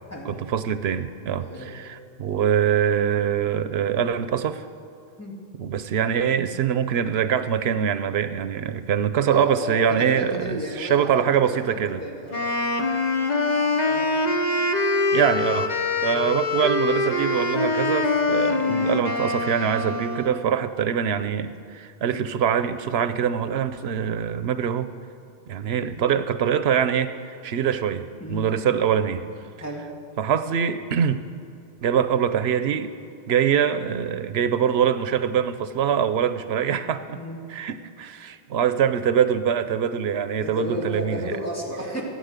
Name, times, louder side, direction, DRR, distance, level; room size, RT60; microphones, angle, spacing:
voice 1, 0.3-4.6 5.6-12.0 15.1-15.7 16.0-24.9 25.5-29.2 30.2-31.2 31.8-32.9 33.3-37.2 37.5-41.2, right 8 dB, 85° right, 11 dB, 0.9 m, -24 dB
voice 2, 1.4-1.7 5.2-5.4 9.3-12.4 13.8-14.1 25.7-26.0 28.2-28.5 29.6-29.9 37.1-37.4 40.4-42.0, equal, 15° left, -3 dB, 2.7 m, -33 dB
Wind instrument woodwind instrument, 12.3-20.4, left 3 dB, 45° left, 1.2 m, -24 dB
15.5 x 9.7 x 8.2 m, 2.6 s
omnidirectional pair, 1.0 m